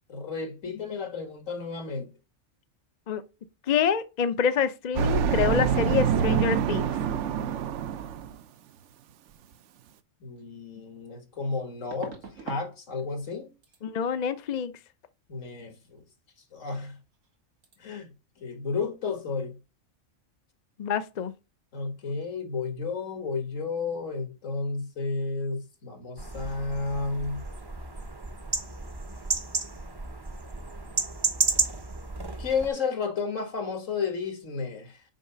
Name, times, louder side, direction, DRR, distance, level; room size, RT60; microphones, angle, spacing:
voice 1, 0.1-2.1 10.2-13.5 15.3-16.0 16.5-17.0 17.8-18.1 18.4-19.6 21.7-27.4 32.4-35.0, left 4 dB, 80° left, 2.0 m, -32 dB
voice 2, 3.7-6.9 13.8-14.7 20.8-21.3, left 7 dB, 45° left, 0.5 m, -26 dB
sound 1, 5.0-8.4, right 8 dB, 70° right, 0.9 m, -26 dB
sound 2, 10.4-10.5 11.9-12.7 13.0-13.4 13.6-13.8 16.7-16.9 17.1-17.4 17.6-17.8, right 4 dB, 90° right, 2.0 m, -42 dB
sound 3, 26.2-32.7, right 3 dB, 25° right, 0.6 m, -32 dB
6.4 x 4.8 x 5.5 m
omnidirectional pair, 1.3 m